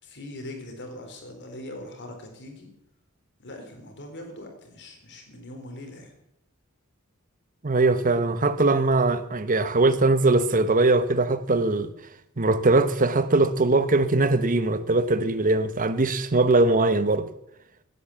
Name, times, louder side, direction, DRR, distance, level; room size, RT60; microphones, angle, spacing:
voice 1, 0.0-2.7 3.4-6.1, left 1 dB, 55° left, 4.0 m, -41 dB
voice 2, 7.6-11.9 12.4-17.3, right 2 dB, 40° right, 1.1 m, -21 dB
16.5 x 10.0 x 7.1 m
head